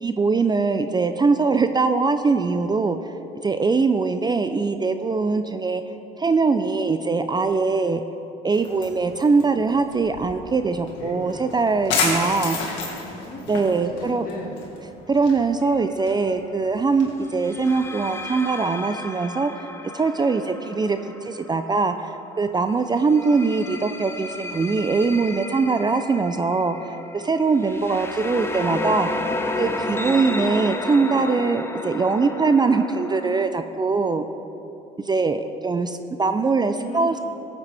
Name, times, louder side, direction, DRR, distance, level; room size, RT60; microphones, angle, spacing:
voice 1, 0.0-3.1 3.4-5.8 6.2-8.0 8.4-12.6 13.5-14.3 15.1-19.6 19.9-22.1 22.4-29.3 29.6-34.3 35.1-37.2, right 4 dB, 25° right, 9 dB, 0.5 m, -22 dB
sound 1, 8.5-18.2, left 4 dB, 80° left, 1.9 m, -32 dB
voice 2, 12.5-13.5 14.1-14.6 36.6-37.2, left 1 dB, 50° left, -1 dB, 2.1 m, -37 dB
sound 2, 15.6-15.9 17.4-22.2 23.0-33.4, left 2 dB, 15° left, 0.8 m, -32 dB
14.5 x 8.2 x 3.4 m, 2.9 s
supercardioid pair, 75°, 18 cm